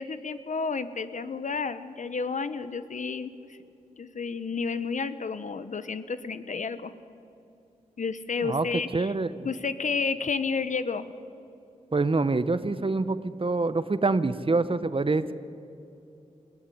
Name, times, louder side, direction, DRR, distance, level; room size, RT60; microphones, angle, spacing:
voice 1, 0.0-3.6 4.0-6.9 8.0-9.1 9.4-11.1, left 5 dB, 65° left, 13 dB, 1.0 m, -31 dB
voice 2, 8.9-9.5 11.9-15.3, right 3 dB, 40° right, 14 dB, 1.0 m, -26 dB
21.5 x 15.5 x 9.9 m, 2.7 s
cardioid pair, 40°, 14 cm